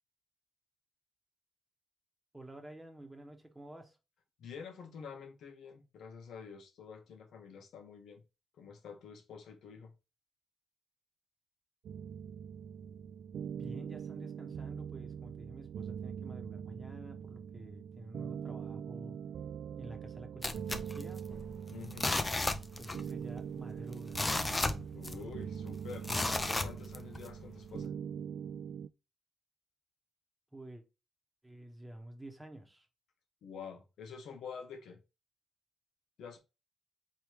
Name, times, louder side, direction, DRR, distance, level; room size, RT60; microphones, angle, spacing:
voice 1, 2.3-4.0 13.5-19.2 19.8-21.2 22.8-24.3 30.5-30.8 31.4-32.9, right 1 dB, 5° right, 1.0 m, -50 dB
voice 2, 4.4-8.2 8.6-9.9 21.7-22.2 24.9-26.1 26.5-27.9 33.4-35.0 36.2-36.4, left 6 dB, 80° left, 1.2 m, -48 dB
sound 1, 11.8-28.9, right 8 dB, 65° right, 0.3 m, -43 dB
sound 2, 20.4-21.5 21.9-23.1 23.4-23.5 23.9-25.4 26.0-27.3 27.8-27.9, left 2 dB, 15° left, 0.4 m, -33 dB
4.6 x 3.1 x 3.1 m
wide cardioid pair, 165°, 0 cm